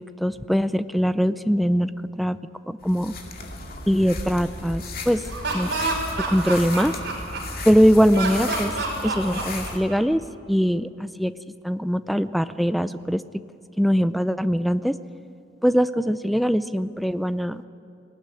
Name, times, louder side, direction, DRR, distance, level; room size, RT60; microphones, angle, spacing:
voice 1, 0.0-1.9 2.2-2.4 2.7-3.1 3.9-5.2 5.5-5.7 6.3-6.9 7.7-8.7 9.0-10.2 10.5-11.3 11.6-13.2 13.8-14.9 15.6-17.6, equal, ahead, 13 dB, 0.4 m, -21 dB
sound 1, 2.8-9.8, left 2 dB, 50° left, 2.4 m, -35 dB
Laughter, 5.1-7.6 8.1-10.2, right 3 dB, 60° right, 5.5 m, -28 dB
20.0 x 18.0 x 9.8 m, 2.6 s
head